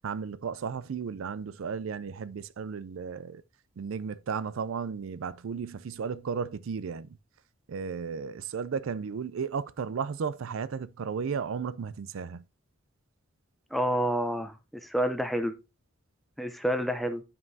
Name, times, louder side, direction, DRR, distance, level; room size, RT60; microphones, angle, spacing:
voice 1, 0.0-3.4 3.8-7.2 7.7-12.4, right 6 dB, 80° right, 0.4 m, -34 dB
voice 2, 13.7-14.6 14.8-15.5 16.4-17.2, equal, ahead, 0.5 m, -28 dB
9.4 x 5.5 x 2.7 m
head